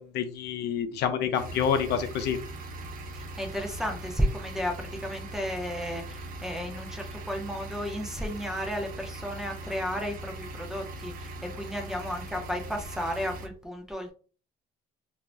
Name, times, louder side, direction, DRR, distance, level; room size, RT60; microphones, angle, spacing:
voice 1, 0.1-2.4, left 7 dB, 75° left, 8 dB, 0.5 m, -27 dB
sound 1, 1.3-13.5, right 2 dB, 55° right, 0.6 m, -40 dB
voice 2, 3.1-14.1, equal, ahead, 3 dB, 0.7 m, -33 dB
2.6 x 2.1 x 3.3 m, 0.38 s
cardioid pair, 110°, 17 cm